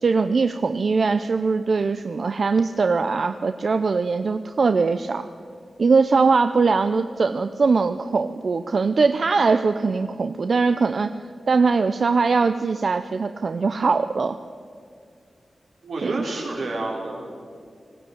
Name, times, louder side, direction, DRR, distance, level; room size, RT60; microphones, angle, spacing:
voice 1, 0.0-5.2 5.8-11.2 11.5-14.4 16.0-16.2, right 4 dB, 60° right, 9 dB, 0.6 m, -21 dB
voice 2, 15.8-17.4, right 2 dB, 90° right, -2 dB, 4.9 m, -29 dB
20.0 x 16.0 x 9.3 m, 2.2 s
wide cardioid pair, 95°, 0 cm